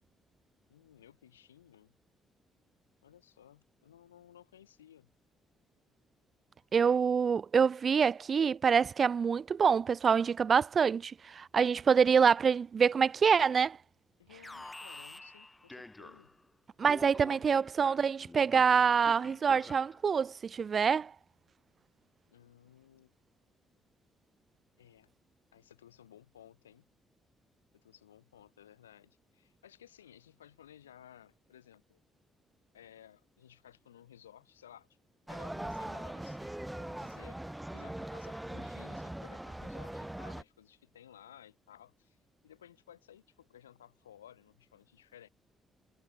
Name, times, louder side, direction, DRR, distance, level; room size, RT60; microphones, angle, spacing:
voice 1, 0.7-1.9 3.0-5.1 14.2-16.3 17.2-17.4 22.3-23.1 24.8-25.1 25.5-26.8 27.7-32.0 32.7-34.9 35.3-42.2 42.4-45.3, left 10 dB, 85° left, 7.6 m, -57 dB
voice 2, 6.7-13.8 16.8-21.1, right 6 dB, 45° right, 0.5 m, -26 dB
Alarm, 14.4-16.4 16.8-20.1, left 2 dB, 15° left, 3.8 m, -49 dB
sound 1, 35.3-40.4, right 1 dB, 10° right, 0.9 m, -41 dB
figure-of-eight pair, 40°, 0 cm